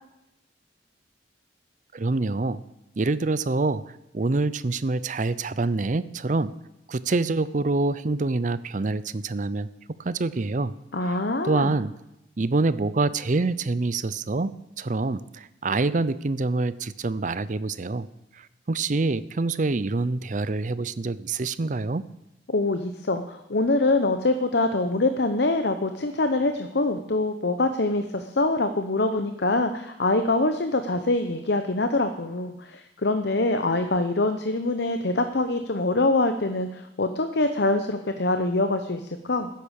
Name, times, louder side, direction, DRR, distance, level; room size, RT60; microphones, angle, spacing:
voice 1, 1.9-2.6 3.0-6.5 6.9-9.7 10.0-10.7 11.0-11.9 12.4-14.5 14.8-18.1 18.3-22.0, right 3 dB, 45° right, 16 dB, 0.6 m, -26 dB
voice 2, 10.9-11.7 22.5-39.5, left 2 dB, 65° left, 8 dB, 0.8 m, -24 dB
14.0 x 10.5 x 6.5 m, 0.89 s
head